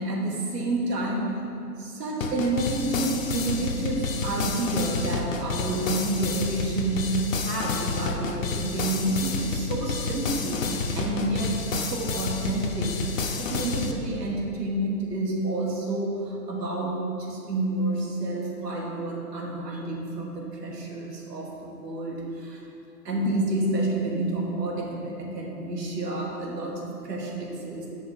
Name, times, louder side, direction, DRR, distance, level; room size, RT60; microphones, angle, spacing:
voice 1, 0.0-1.4 1.8-22.6 23.0-27.9, right 2 dB, 80° right, -1 dB, 1.4 m, -29 dB
sound 1, 2.2-13.9, left 4 dB, 60° left, 0.5 m, -30 dB
6.2 x 3.7 x 4.3 m, 2.7 s
hypercardioid pair, 170°, 48 cm